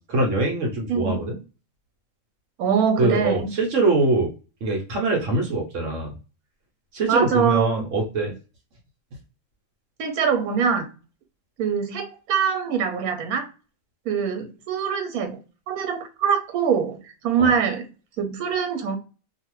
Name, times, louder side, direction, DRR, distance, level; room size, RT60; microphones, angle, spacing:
voice 1, 0.1-1.4 3.0-4.3 4.6-6.2 6.9-8.3 17.4-17.5, right 2 dB, 65° right, 1.0 m, -23 dB
voice 2, 0.9-1.3 2.6-3.5 7.1-7.8 10.0-10.9 11.6-13.5 14.1-15.4 15.7-17.9 18.2-19.0, right 6 dB, 85° right, 1.1 m, -23 dB
2.6 x 2.4 x 3.0 m
omnidirectional pair, 1.5 m